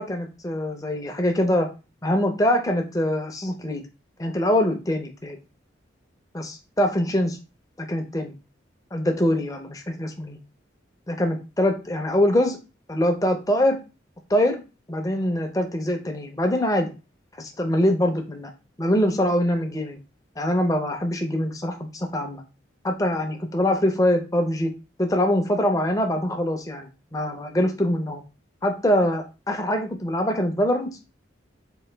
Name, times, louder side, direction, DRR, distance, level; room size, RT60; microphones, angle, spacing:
voice 1, 0.0-1.7 2.0-3.8 4.2-5.4 6.3-7.4 7.8-8.3 8.9-10.4 11.1-12.6 12.9-13.8 14.3-14.6 14.9-16.9 17.4-18.5 18.8-20.0 20.4-22.4 22.8-24.7 25.0-28.2 28.6-30.9, left 1 dB, 15° left, 4 dB, 0.6 m, -23 dB
3.8 x 2.6 x 3.2 m, 0.30 s
head